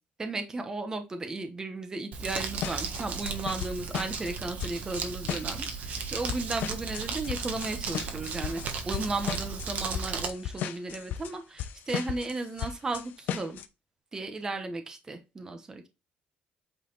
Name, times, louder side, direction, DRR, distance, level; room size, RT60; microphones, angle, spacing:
voice 1, 0.2-13.6 14.1-15.9, right 3 dB, 20° right, 6 dB, 1.0 m, -35 dB
Crumpling crinkling, 2.1-10.3, right 5 dB, 55° right, 1.5 m, -35 dB
sound 1, 2.3-4.3 4.6-13.7, left 9 dB, 70° left, 0.8 m, -36 dB
8.5 x 4.1 x 4.0 m, 0.27 s
cardioid pair, 155°, 3 cm